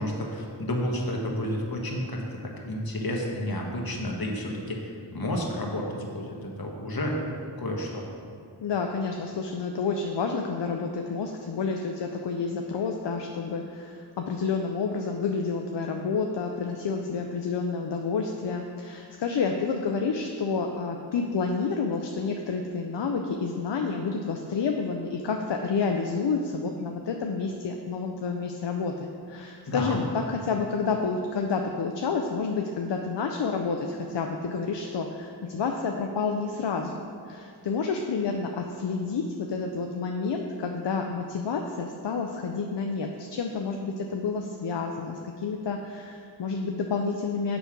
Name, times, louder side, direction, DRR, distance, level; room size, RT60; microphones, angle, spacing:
voice 1, 0.0-2.2 2.6-7.1 7.6-8.0 29.7-30.1, left 1 dB, 55° left, -1 dB, 1.4 m, -31 dB
voice 2, 8.6-47.6, left 4 dB, 70° left, 3 dB, 0.6 m, -29 dB
7.0 x 5.2 x 5.9 m, 2.4 s
wide cardioid pair, 50°, 44 cm